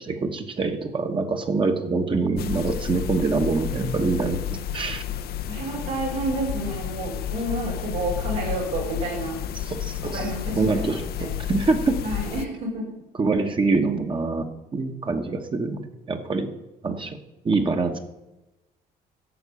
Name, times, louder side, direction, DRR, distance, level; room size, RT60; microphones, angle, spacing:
voice 1, 0.0-4.4 4.7-5.0 9.7-10.2 10.6-10.9 11.5-12.0 13.2-14.5 14.7-15.8 16.1-16.5 16.8-17.2 17.4-18.0, right 3 dB, 30° right, 5 dB, 1.2 m, -24 dB
sound 1, 2.4-12.5, left 10 dB, 65° left, 0.7 m, -31 dB
voice 2, 5.5-9.4 10.1-11.3 12.0-12.8, right 2 dB, 90° right, -5 dB, 5.1 m, -30 dB
11.5 x 6.5 x 8.2 m, 1.0 s
cardioid pair, 110°, 17 cm